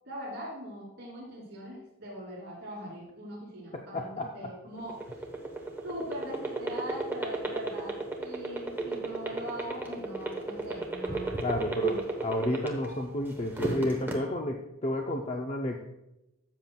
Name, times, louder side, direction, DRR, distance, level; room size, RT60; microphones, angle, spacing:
voice 1, 0.0-5.2 5.8-11.4 11.8-12.0, equal, 50° right, -5 dB, 2.9 m, -41 dB
voice 2, 3.7-4.5 11.4-15.8, left 1 dB, 30° left, 2 dB, 0.5 m, -31 dB
sound 1, 4.8-13.0 13.4-14.1, right 3 dB, 10° right, 1.0 m, -32 dB
13.0 x 7.5 x 2.3 m, 0.91 s
head